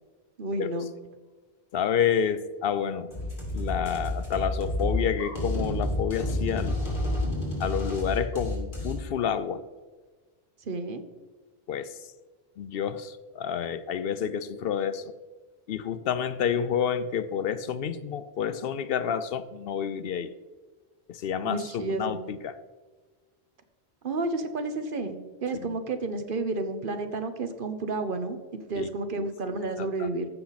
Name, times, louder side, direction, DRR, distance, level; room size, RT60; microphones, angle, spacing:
voice 1, 0.4-0.9 10.6-11.0 21.4-22.2 24.0-30.3, right 3 dB, 60° right, 8 dB, 1.0 m, -31 dB
voice 2, 1.7-3.1 3.5-6.8 7.6-9.7 11.7-12.0 12.6-15.1 15.7-20.3 21.1-22.6 25.5-25.7 28.7-28.9 29.2-29.3 29.8-30.1, left 8 dB, 70° left, 14 dB, 0.7 m, -29 dB
sound 1, 3.1-8.9, left 1 dB, 50° left, 3.2 m, -30 dB
14.5 x 5.8 x 4.0 m, 1.4 s
omnidirectional pair, 1.0 m